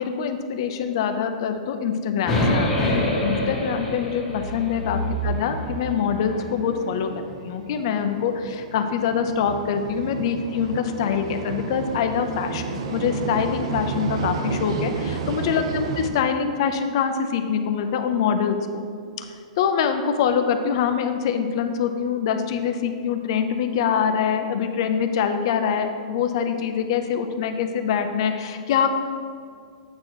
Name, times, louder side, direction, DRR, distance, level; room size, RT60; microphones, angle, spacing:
voice 1, 0.0-18.8 19.2-19.3 19.6-28.9, left 7 dB, 40° left, 7 dB, 0.5 m, -24 dB
sound 1, 2.2-6.5, left 1 dB, 10° left, 1.2 m, -26 dB
sound 2, 4.4-16.1, right 5 dB, 50° right, 0.6 m, -32 dB
8.5 x 2.9 x 6.1 m, 2.2 s
hypercardioid pair, 175°, 4 cm